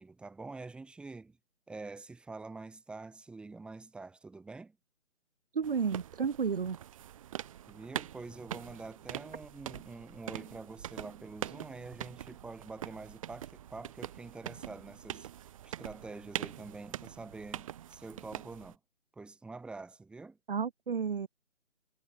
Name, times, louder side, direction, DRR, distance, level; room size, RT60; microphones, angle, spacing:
voice 1, 0.0-1.4 1.7-4.8 7.7-15.3 15.6-18.8 19.1-20.4, right 3 dB, ahead, 5.6 m, -46 dB
voice 2, 5.5-6.8 20.5-21.3, right 6 dB, 40° right, 3.8 m, -32 dB
sound 1, 5.6-18.8, right 11 dB, 25° right, 5.9 m, -44 dB
figure-of-eight pair, 155°, 40 cm